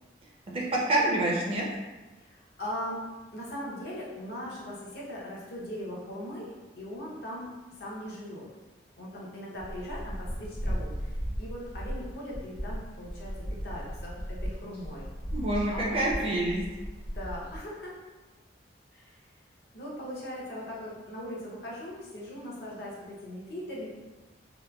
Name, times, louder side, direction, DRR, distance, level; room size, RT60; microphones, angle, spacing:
voice 1, 0.5-1.6 15.3-16.6, right 1 dB, 30° right, -3 dB, 0.4 m, -27 dB
voice 2, 2.2-3.0 3.3-7.5 7.8-8.5 9.0-13.3 13.6-15.1 15.7-16.2 17.1-18.0 18.9-19.2 19.7-23.9, equal, 60° left, -5 dB, 0.7 m, -39 dB
sound 1, 9.6-17.6, equal, 80° left, 1.2 m, -36 dB
2.9 x 2.2 x 2.2 m, 1.2 s
head